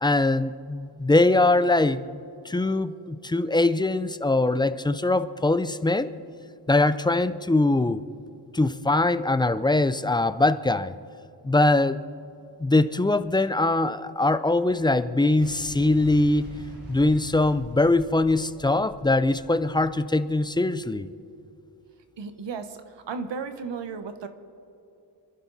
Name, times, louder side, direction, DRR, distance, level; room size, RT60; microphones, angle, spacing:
voice 1, 0.0-6.1 6.7-8.0 8.5-10.9 11.4-12.0 12.6-16.5 16.9-21.1, left 2 dB, 10° left, 12 dB, 0.4 m, -22 dB
Boom, 15.4-20.3, right 1 dB, 60° right, 4.3 m, -45 dB
voice 2, 22.2-24.3, right 5 dB, 80° right, 9 dB, 1.3 m, -34 dB
28.0 x 11.0 x 4.1 m, 2.7 s
wide cardioid pair, 140°, 43 cm